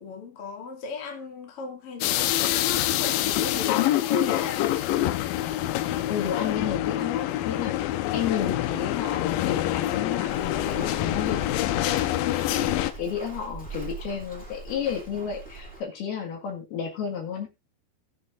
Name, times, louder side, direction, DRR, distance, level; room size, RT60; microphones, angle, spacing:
voice 1, 0.0-4.9, left 4 dB, 40° left, 2.8 m, -37 dB
sound 1, 2.0-12.9, left 14 dB, 85° left, 2.0 m, -26 dB
voice 2, 6.1-7.9 8.1-17.5, left 8 dB, 70° left, 3.7 m, -32 dB
Walk footsteps, 10.3-15.8, right 4 dB, 5° left, 2.1 m, -41 dB
19.5 x 6.7 x 2.6 m
omnidirectional pair, 4.9 m